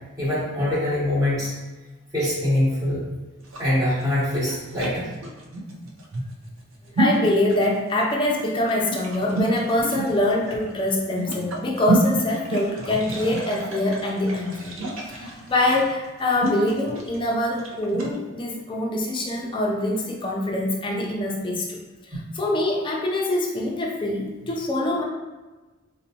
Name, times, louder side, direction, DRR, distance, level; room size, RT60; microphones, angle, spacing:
voice 1, 0.2-1.5 2.1-3.0 3.6-5.1, left 1 dB, 15° right, -9 dB, 0.9 m, -23 dB
sound 1, 3.4-18.2, right 1 dB, 70° right, 0.6 m, -29 dB
voice 2, 6.9-14.7 15.1-21.8 22.1-25.0, left 1 dB, 25° left, -1 dB, 0.4 m, -24 dB
4.0 x 2.2 x 2.7 m, 1.2 s
head